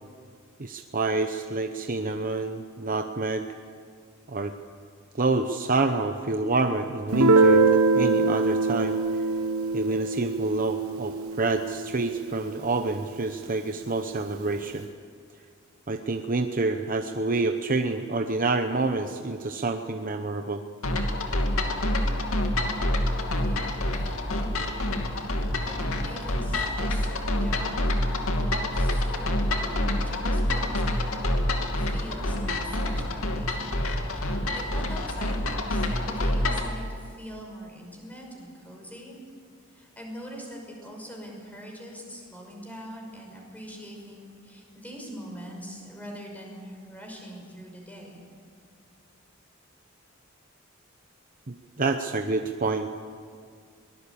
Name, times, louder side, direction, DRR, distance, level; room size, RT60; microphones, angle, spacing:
voice 1, 0.6-3.5 4.3-4.5 5.1-9.0 9.7-14.9 15.9-20.6 51.5-52.9, right 3 dB, 40° right, 6 dB, 0.9 m, -27 dB
Guitar, 7.1-12.6, right 3 dB, 80° right, 1.1 m, -23 dB
sound 1, 20.8-36.7, left 1 dB, 75° left, 2.6 m, -27 dB
voice 2, 23.2-24.5 25.6-39.2 39.7-48.2, equal, 5° left, 0 dB, 5.7 m, -43 dB
23.5 x 19.5 x 8.6 m, 2.2 s
head